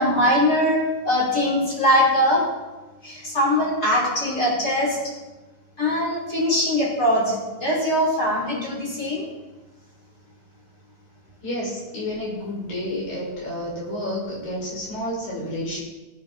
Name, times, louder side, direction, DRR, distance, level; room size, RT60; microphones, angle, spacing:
voice 1, 0.0-2.4 3.0-5.0 5.8-9.3, left 1 dB, 25° left, -6 dB, 5.3 m, -21 dB
voice 2, 11.4-15.8, left 1 dB, 80° left, -5 dB, 7.5 m, -30 dB
17.5 x 9.7 x 4.3 m, 1.2 s
omnidirectional pair, 4.0 m